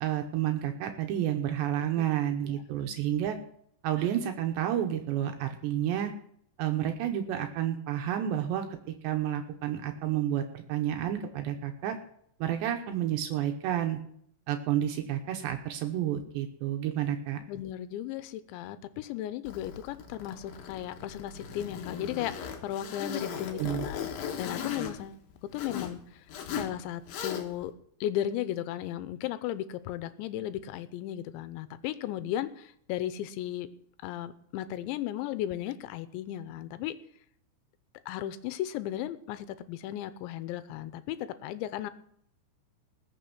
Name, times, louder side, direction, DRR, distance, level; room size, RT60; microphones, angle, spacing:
voice 1, 0.0-3.4 3.8-6.1 6.6-12.0 12.4-14.0 14.5-17.4 23.5-23.9, right 11 dB, 75° right, 5 dB, 3.0 m, -30 dB
voice 2, 17.5-25.2 25.5-26.2 26.5-27.7 28.0-33.7 34.0-37.0 38.1-41.9, left 12 dB, 85° left, 13 dB, 3.0 m, -35 dB
Zipper (clothing), 19.5-26.0 26.3-26.7 27.1-27.7, left 7 dB, 65° left, 2.5 m, -38 dB
20.0 x 7.0 x 6.0 m, 0.67 s
omnidirectional pair, 5.3 m